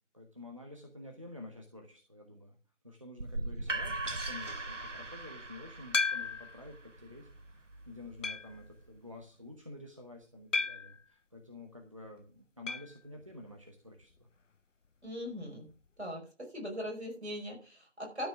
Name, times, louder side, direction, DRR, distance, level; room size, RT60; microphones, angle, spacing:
voice 1, 0.1-2.6 2.8-14.3, left 2 dB, 25° right, 2 dB, 1.2 m, -50 dB
sound 1, 3.2-9.0, right 2 dB, 85° right, 1.2 m, -40 dB
sound 2, 5.9-6.6 7.2-7.3 8.2-8.6 10.5-11.0 12.7-13.0 13.2-13.3 13.6-13.7 15.7-15.8, left 4 dB, 85° left, 0.8 m, -33 dB
voice 2, 15.0-15.7 16.0-18.3, equal, 60° right, 1 dB, 5.1 m, -40 dB
12.5 x 6.0 x 6.1 m, 0.37 s
figure-of-eight pair, 170°, 36 cm